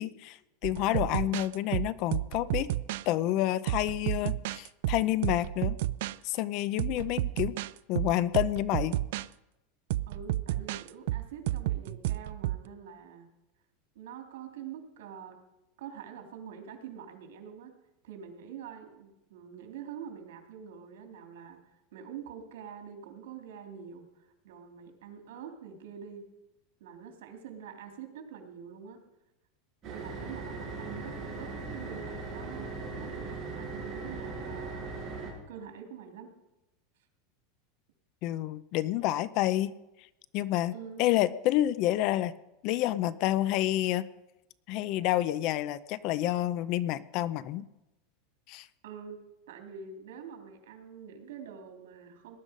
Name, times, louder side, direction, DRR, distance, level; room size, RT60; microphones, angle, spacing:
voice 1, 0.0-2.7 3.1-5.8 6.2-7.6 7.9-9.0 38.2-39.7 40.3-40.7 41.0-42.3 42.6-44.1 44.7-47.6 48.5-48.7, left 14 dB, 45° left, 17 dB, 0.6 m, -29 dB
sound 1, 0.6-3.1 3.7-6.2 6.6-9.3 9.9-12.7, right 15 dB, 65° right, 0.4 m, -32 dB
voice 2, 10.1-13.3 13.9-15.4 15.8-17.7 18.0-21.6 21.9-24.1 24.4-26.2 26.8-29.0 29.8-34.9 35.5-36.3 40.7-41.0 48.8-49.2 49.5-52.4, right 7 dB, 85° right, 3 dB, 3.3 m, -45 dB
sound 2, 29.8-35.3, right 3 dB, 25° right, 7.4 m, -39 dB
19.0 x 11.5 x 5.3 m, 0.93 s
supercardioid pair, 160°, 0 cm